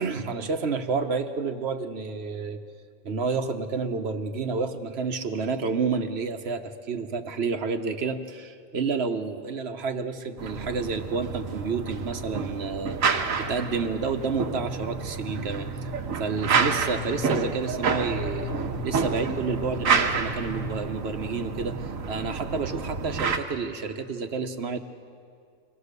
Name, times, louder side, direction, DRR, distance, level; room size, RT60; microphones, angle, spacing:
voice 1, 0.0-2.6 3.0-15.9 16.2-18.5 18.8-24.8, right 4 dB, 55° right, 7 dB, 1.2 m, -30 dB
sound 1, 10.4-23.4, right 5 dB, 80° right, 1.5 m, -29 dB
24.0 x 18.0 x 6.7 m, 2.2 s
omnidirectional pair, 1.4 m